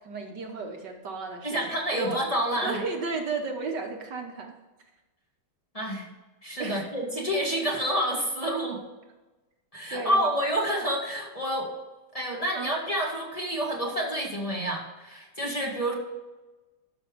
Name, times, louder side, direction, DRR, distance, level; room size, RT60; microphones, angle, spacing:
voice 1, 0.0-1.6 1.9-2.2 2.6-4.6 6.6-6.9 9.9-10.3 12.5-12.7, right 3 dB, 65° right, 4 dB, 1.6 m, -33 dB
voice 2, 1.4-2.8 5.7-6.1 6.4-8.8 9.7-11.7 12.1-15.9, equal, 20° left, -2 dB, 1.8 m, -28 dB
12.5 x 6.1 x 5.2 m, 1.1 s
omnidirectional pair, 2.1 m